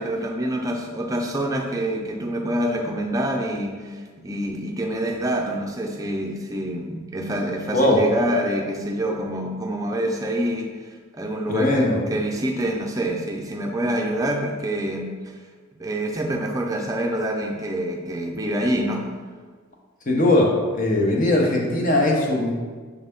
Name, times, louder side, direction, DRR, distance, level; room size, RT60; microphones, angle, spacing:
voice 1, 0.0-15.4 15.8-19.1, right 1 dB, 15° right, 1 dB, 0.5 m, -26 dB
voice 2, 11.5-12.0 20.1-22.5, left 1 dB, 40° left, -1 dB, 0.9 m, -19 dB
6.7 x 4.0 x 3.6 m, 1.5 s
head